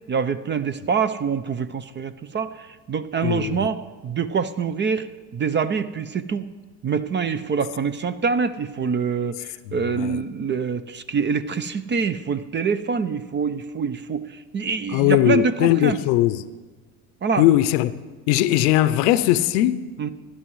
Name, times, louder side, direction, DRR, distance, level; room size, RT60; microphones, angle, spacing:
voice 1, 0.1-6.5 6.8-16.0 17.2-17.4 20.0-20.1, right 5 dB, 25° right, 0.5 m, -25 dB
voice 2, 3.2-3.7 10.0-10.2 14.9-16.4 17.4-17.9 18.3-19.8, left 14 dB, 80° left, 0.7 m, -19 dB
17.0 x 11.0 x 3.1 m
supercardioid pair, 85°, 46 cm